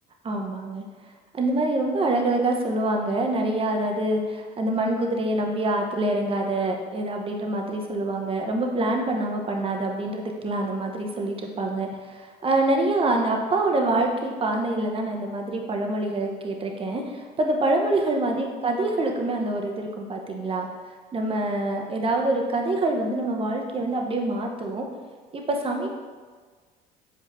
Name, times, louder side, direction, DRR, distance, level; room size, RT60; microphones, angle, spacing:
voice 1, 0.2-0.8 1.3-20.7 21.1-24.9 25.3-25.9, right 2 dB, 30° right, 2 dB, 1.0 m, -25 dB
7.3 x 4.8 x 2.7 m, 1.5 s
supercardioid pair, 80°, 18 cm